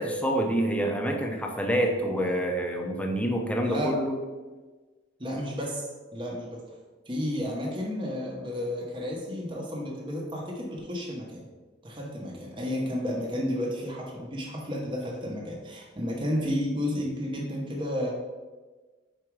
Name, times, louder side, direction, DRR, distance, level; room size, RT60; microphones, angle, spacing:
voice 1, 0.0-4.1, right 1 dB, 5° left, 2 dB, 0.7 m, -27 dB
voice 2, 3.6-3.9 5.2-5.8 6.1-6.6 7.1-11.4 11.8-18.1, equal, 25° right, -2 dB, 1.0 m, -32 dB
4.9 x 4.6 x 4.7 m, 1.3 s
head